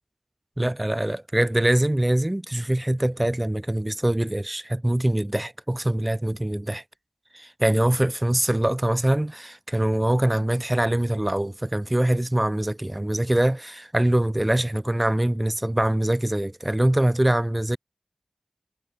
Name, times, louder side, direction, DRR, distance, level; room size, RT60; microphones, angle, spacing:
voice 1, 0.6-6.8 7.3-17.8, right 1 dB, 20° right, 2.3 m, -23 dB
wide cardioid pair, 45°, 0 cm